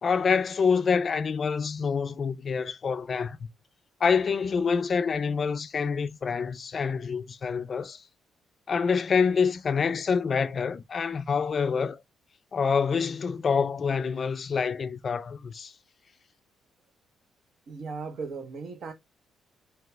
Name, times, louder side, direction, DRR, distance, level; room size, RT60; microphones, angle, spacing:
voice 1, 0.0-3.5 4.0-8.0 8.7-12.0 12.5-15.7, left 5 dB, 45° left, 0.3 m, -26 dB
voice 2, 17.7-18.9, right 4 dB, 60° right, 0.9 m, -37 dB
3.1 x 2.9 x 3.4 m
cardioid pair, 90°, 0 cm